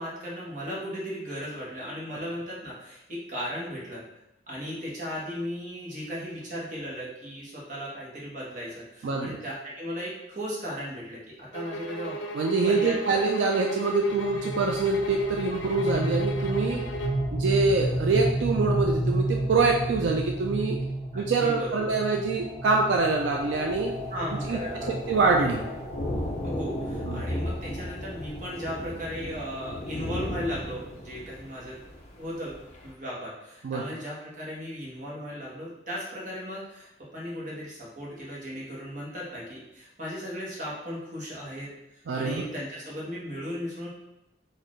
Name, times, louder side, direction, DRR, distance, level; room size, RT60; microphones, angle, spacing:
voice 1, 0.0-4.0 4.5-12.2 12.7-13.2 21.1-21.9 24.1-25.2 26.4-31.7 32.2-43.9, equal, 45° right, -5 dB, 1.1 m, -36 dB
voice 2, 9.0-9.4 12.3-16.8 17.3-20.8 21.1-23.9 24.5-24.6 24.9-25.6 27.1-27.3 33.6-33.8 42.1-42.4, right 3 dB, 80° right, 1 dB, 0.4 m, -25 dB
sound 1, 11.5-17.3, right 2 dB, 85° left, 0.5 m, -36 dB
sound 2, 14.1-29.0, right 1 dB, ahead, 0.9 m, -32 dB
Thunder, 22.9-32.9, left 1 dB, 35° left, 0.6 m, -36 dB
4.1 x 2.6 x 3.1 m, 0.88 s
head